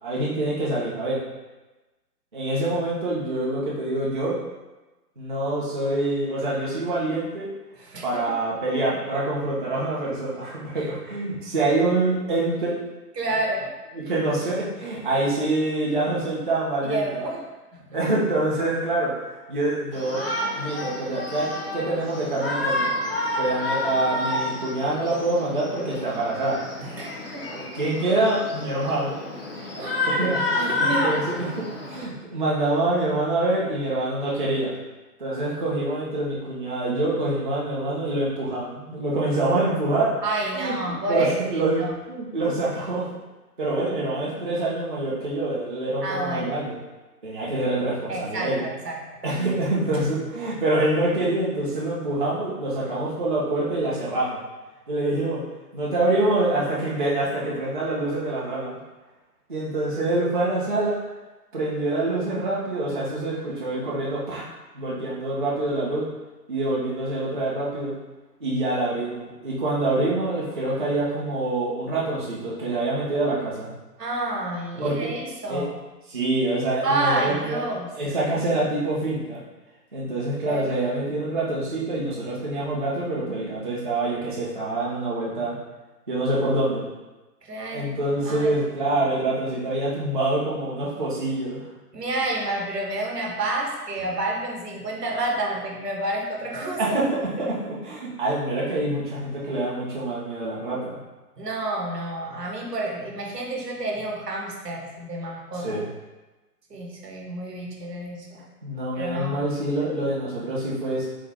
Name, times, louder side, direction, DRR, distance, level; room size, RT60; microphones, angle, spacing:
voice 1, 0.0-1.2 2.3-4.4 5.2-7.5 8.0-12.8 13.9-17.2 17.9-20.2 20.6-23.0 23.4-26.6 27.5-29.2 30.1-34.8 35.2-40.1 40.5-41.8 42.1-43.1 43.6-46.8 47.2-48.6 49.2-54.4 54.9-55.4 55.7-58.8 59.5-61.0 61.5-64.5 64.7-66.1 66.5-67.9 68.4-73.7 74.8-75.1 75.5-75.6 76.1-77.6 77.9-79.4 79.9-85.5 86.1-86.8 87.7-91.6 96.8-101.0 105.5-105.9 108.6-111.1, right 2 dB, 35° right, -6 dB, 0.4 m, -26 dB
voice 2, 7.8-8.3 10.8-10.9 13.2-13.7 16.8-17.4 17.7-17.8 26.8-27.6 29.7-30.0 30.6-31.1 40.2-42.0 46.0-46.5 48.1-49.0 74.0-75.7 76.8-77.9 80.4-80.7 87.4-88.5 91.9-96.8 97.4-97.6 101.4-105.8 106.7-108.4 109.0-109.4, right 2 dB, 80° right, -1 dB, 0.8 m, -29 dB
Shout, 19.9-32.0, left 1 dB, 40° left, 0.4 m, -29 dB
3.5 x 2.1 x 3.2 m, 1.1 s
figure-of-eight pair, 130°, 48 cm